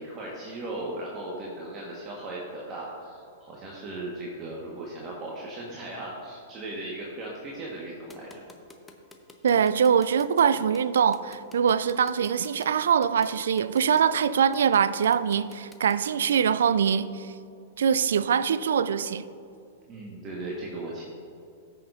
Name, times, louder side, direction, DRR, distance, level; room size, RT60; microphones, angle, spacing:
voice 1, 0.0-8.4 19.9-21.1, right 2 dB, 30° right, 1.5 m, -37 dB
sound 1, 8.1-16.1, left 3 dB, 10° left, 0.8 m, -50 dB
voice 2, 9.4-17.3 17.8-19.2, right 7 dB, 70° right, 0.3 m, -23 dB
15.0 x 6.4 x 2.6 m
figure-of-eight pair, 105°, 0 cm